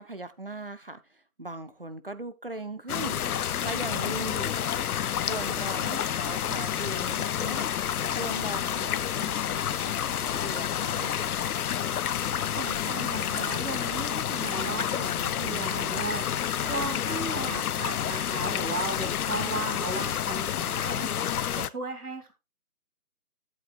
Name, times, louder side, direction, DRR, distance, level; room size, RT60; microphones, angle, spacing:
voice 1, 0.0-4.7 5.2-7.8 8.1-11.1 16.6-16.8, right 2 dB, 40° right, 0.5 m, -39 dB
sound 1, 2.9-21.7, left 9 dB, 80° left, 0.5 m, -29 dB
voice 2, 12.4-16.3 16.7-21.1 21.6-22.3, right 3 dB, 85° right, 2.3 m, -35 dB
9.8 x 8.2 x 2.3 m
figure-of-eight pair, 165°, 44 cm